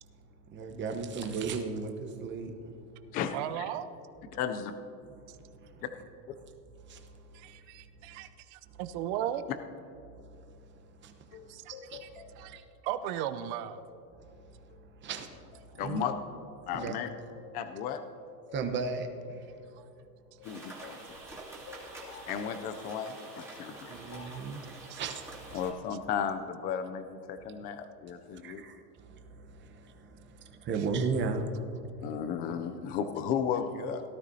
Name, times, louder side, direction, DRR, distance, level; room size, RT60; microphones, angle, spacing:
voice 1, 0.5-2.7 5.1-5.2 5.6-5.8 6.9-7.2 8.1-8.2 10.2-10.6 11.0-12.0 12.4-12.6 15.0-15.3 15.7-16.0 16.7-17.0 18.5-19.5 23.9-25.6 28.4-32.1, right 4 dB, 25° right, 5 dB, 0.9 m, -36 dB
voice 2, 3.3-4.0 5.3-5.4 7.3-9.5 11.5-11.7 12.0-12.1 12.4-13.8 19.7-19.9 20.5-20.6 24.9-25.0, right 11 dB, 45° right, 12 dB, 0.6 m, -37 dB
voice 3, 4.3-4.7 15.8-16.1 16.7-17.1 17.5-18.0 20.4-21.0 22.3-24.0 25.5-28.6 32.0-34.0, left 7 dB, 20° left, 9 dB, 0.3 m, -34 dB
sound 1, 11.3-16.3 16.8-21.1 21.7-23.1 24.1-24.5, left 7 dB, 50° left, 0.9 m, -51 dB
sound 2, 20.4-25.7, right 2 dB, 5° right, 2.5 m, -47 dB
17.5 x 12.0 x 2.7 m, 2.7 s
supercardioid pair, 130°, 47 cm